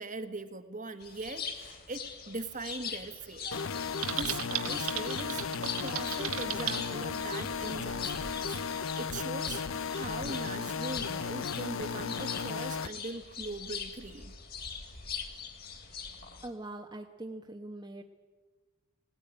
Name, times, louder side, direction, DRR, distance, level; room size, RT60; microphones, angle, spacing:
voice 1, 0.0-3.5 4.1-9.6 9.9-14.3, right 3 dB, 35° right, 8 dB, 1.5 m, -41 dB
sound 1, 1.0-16.5, left 6 dB, 45° left, 2.9 m, -42 dB
sound 2, 3.5-12.9, left 5 dB, 65° left, 0.6 m, -35 dB
Typing, 4.0-6.8, right 11 dB, 75° right, 1.6 m, -35 dB
voice 2, 16.4-18.0, right 2 dB, 20° right, 1 dB, 1.0 m, -42 dB
19.5 x 18.5 x 9.9 m, 1.3 s
head